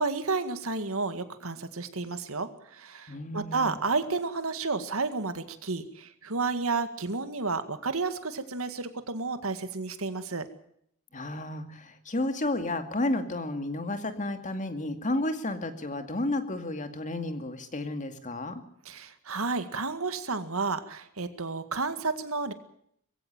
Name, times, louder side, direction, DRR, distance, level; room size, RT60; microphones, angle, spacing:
voice 1, 0.0-10.5 18.9-22.5, right 4 dB, 70° right, 10 dB, 2.0 m, -31 dB
voice 2, 3.1-3.8 11.1-18.6, left 2 dB, 35° left, 8 dB, 2.3 m, -32 dB
22.0 x 16.0 x 9.0 m, 0.70 s
head